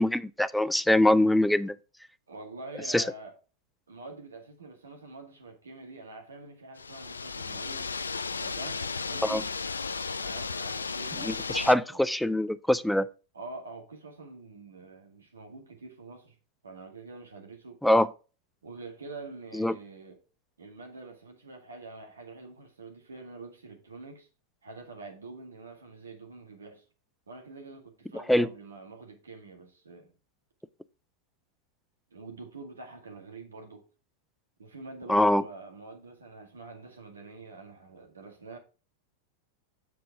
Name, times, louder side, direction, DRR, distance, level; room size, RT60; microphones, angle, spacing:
voice 1, 0.0-1.7 2.9-3.0 9.2-9.4 11.3-13.1 17.8-18.1 19.5-19.7 28.3-28.5 35.1-35.4, left 1 dB, 5° left, 0.4 m, -23 dB
voice 2, 2.3-3.4 3.9-7.9 8.4-9.5 10.2-12.0 13.3-16.4 16.6-17.8 18.6-20.2 20.6-24.3 24.6-26.9 27.3-30.1 32.1-33.8 34.6-38.6, right 3 dB, 70° right, 2.0 m, -46 dB
sound 1, 6.8-11.7, left 4 dB, 75° left, 0.4 m, -34 dB
7.7 x 7.0 x 3.6 m
figure-of-eight pair, 90°, 0 cm